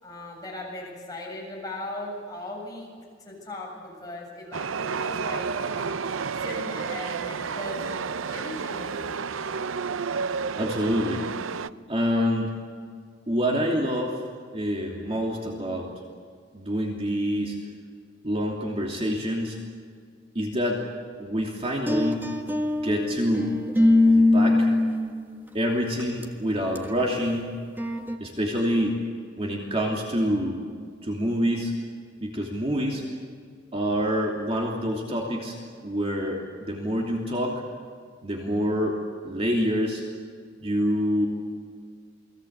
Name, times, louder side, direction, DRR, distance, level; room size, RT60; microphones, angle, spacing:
voice 1, 0.0-2.9 3.2-6.0 6.4-9.2, left 1 dB, 20° left, -2 dB, 7.8 m, -38 dB
Chatter / Subway metro underground, 4.5-11.7, right 5 dB, 85° right, 0.6 m, -31 dB
voice 2, 10.6-11.2 11.9-12.5 13.3-14.2 14.5-15.9 16.5-17.6 18.2-19.6 20.3-20.8 21.2-22.2 22.8-23.5 24.1-24.7 25.5-27.5 28.2-29.0 29.4-30.6 31.0-31.7 32.2-33.0 33.7-35.6 35.8-37.6 38.2-39.0 39.2-40.0 40.6-41.3, equal, 30° right, 0 dB, 2.9 m, -26 dB
sound 1, 21.9-25.5 26.0-26.2 26.8-27.0 27.8-28.2, left 2 dB, 10° right, 1.6 m, -22 dB
29.5 x 21.0 x 8.2 m, 2.1 s
head